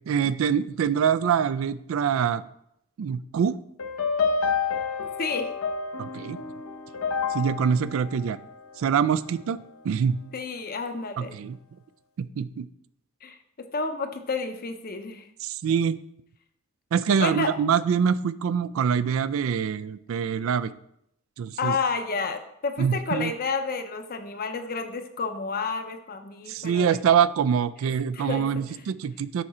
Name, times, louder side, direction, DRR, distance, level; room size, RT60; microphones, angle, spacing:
voice 1, 0.1-2.4 3.0-3.6 6.0-6.4 7.3-8.4 8.8-9.6 9.8-10.2 11.2-11.6 12.2-12.7 15.4-16.0 16.9-20.7 21.4-21.8 22.8-23.3 26.5-29.4, right 7 dB, 70° right, 16 dB, 0.3 m, -24 dB
sound 1, 3.8-9.1, left 5 dB, 85° left, 0.8 m, -29 dB
voice 2, 10.3-11.4 13.2-15.3 17.2-17.5 21.6-26.8 28.1-28.5, left 4 dB, 45° left, 8 dB, 0.7 m, -30 dB
6.9 x 4.9 x 4.2 m, 0.76 s
head